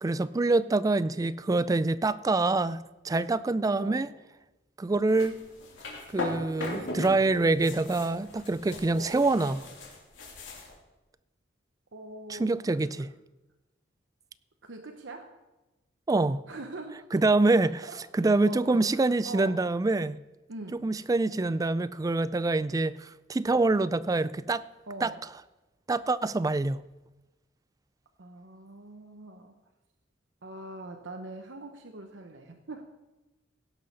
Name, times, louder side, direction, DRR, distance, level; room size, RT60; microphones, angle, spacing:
voice 1, 0.0-4.1 4.8-5.4 6.1-9.7 12.3-13.1 16.1-16.4 17.1-17.8 18.1-20.2 20.7-24.6 25.0-25.1 25.9-26.8, right 2 dB, 20° right, 0.3 m, -26 dB
voice 2, 3.7-4.1 8.9-9.2 11.9-12.5 12.8-12.9 14.6-15.4 16.5-17.1 17.8-19.7 20.5-20.8 24.8-25.2 28.2-29.6 30.4-32.8, right 2 dB, 80° right, 0.9 m, -43 dB
sound 1, 5.1-7.2 7.4-10.7, left 2 dB, 85° left, 2.9 m, -38 dB
17.0 x 6.4 x 5.5 m
head